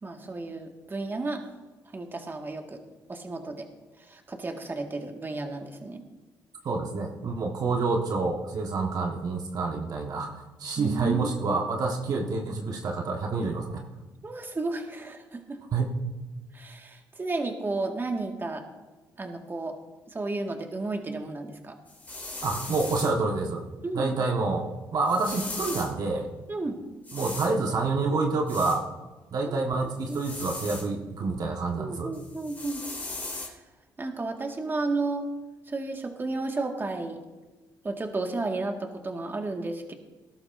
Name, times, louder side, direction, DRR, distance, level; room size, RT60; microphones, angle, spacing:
voice 1, 0.0-1.4 1.9-2.8 3.1-3.7 4.0-6.0 10.8-11.6 14.2-15.6 16.5-18.6 19.2-19.7 20.1-21.8 23.8-24.2 26.5-26.8 29.5-29.6 30.1-30.3 31.8-32.8 33.4-33.6 34.0-35.3 35.7-37.2 37.8-39.9, right 3 dB, 30° right, 3 dB, 1.8 m, -33 dB
voice 2, 6.6-13.8 15.7-16.0 22.4-23.6 23.9-24.6 24.9-26.3 27.1-28.8 29.3-32.1, right 3 dB, 55° right, 1 dB, 1.5 m, -28 dB
sound 1, 21.9-23.2 25.1-25.9 27.0-27.5 28.5-28.8 30.1-30.9 32.1-33.5, left 2 dB, 20° left, 2.6 m, -38 dB
19.0 x 11.5 x 2.6 m, 1.2 s
cardioid pair, 75°, 8 cm